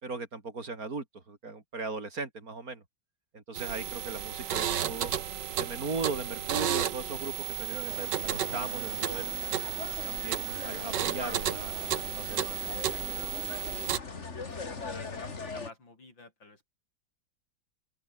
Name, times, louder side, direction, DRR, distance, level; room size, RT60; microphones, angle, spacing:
voice 1, 0.0-2.8 3.3-5.1 5.6-9.3 10.0-13.3, right 3 dB, 50° right, 3.7 m, -38 dB
sound 1, 3.5-14.0, right 10 dB, 70° right, 1.8 m, -33 dB
sound 2, 7.9-15.7, left 4 dB, 40° left, 2.6 m, -41 dB
voice 2, 14.5-16.7, left 3 dB, 90° left, 6.6 m, -52 dB
open air
omnidirectional pair, 2.0 m